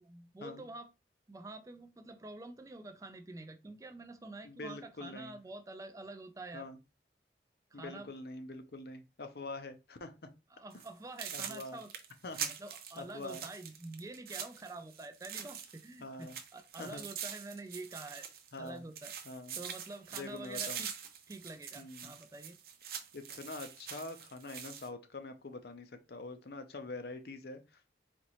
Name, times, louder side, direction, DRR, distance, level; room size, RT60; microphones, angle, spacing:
voice 1, 0.1-0.9 1.3-6.7 7.7-8.1 10.5-11.9 12.6-18.3 18.6-19.1 19.6-20.9 21.3-22.6, right 2 dB, 20° right, 0.3 m, -47 dB
voice 2, 4.4-5.3 6.5-6.8 7.7-10.3 11.3-11.8 12.2-12.5 13.0-13.4 16.0-16.4 16.8-17.1 18.5-18.8 19.3-19.6 20.1-20.8 21.8-22.1 23.1-27.9, left 2 dB, 65° left, 0.6 m, -45 dB
sound 1, 10.7-10.9 11.2-15.9 16.2-18.7 19.0-24.9, right 8 dB, 55° right, 0.6 m, -44 dB
4.1 x 2.9 x 3.0 m
head